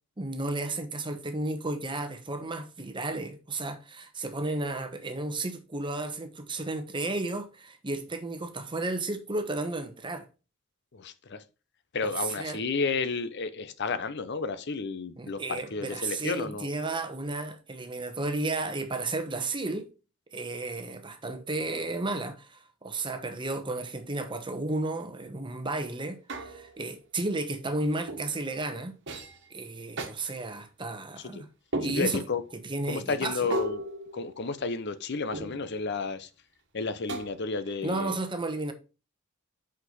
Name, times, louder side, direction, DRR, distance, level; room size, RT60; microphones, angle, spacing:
voice 1, 0.2-10.3 12.0-12.6 15.2-19.9 20.3-28.9 29.5-31.5 31.8-32.3 32.5-33.5 37.8-38.7, right 2 dB, 25° right, 1.1 m, -33 dB
voice 2, 10.9-11.4 11.9-16.7 31.2-31.4 31.9-32.4 32.9-33.8 34.1-36.3 36.7-38.2, left 4 dB, 55° left, 0.7 m, -32 dB
sound 1, 26.3-26.9 28.1-28.4 29.1-29.4 30.0-30.1 31.7-32.4 33.5-34.8 35.3-35.9 37.1-37.7, right 1 dB, 55° right, 1.5 m, -36 dB
6.0 x 5.5 x 5.3 m
head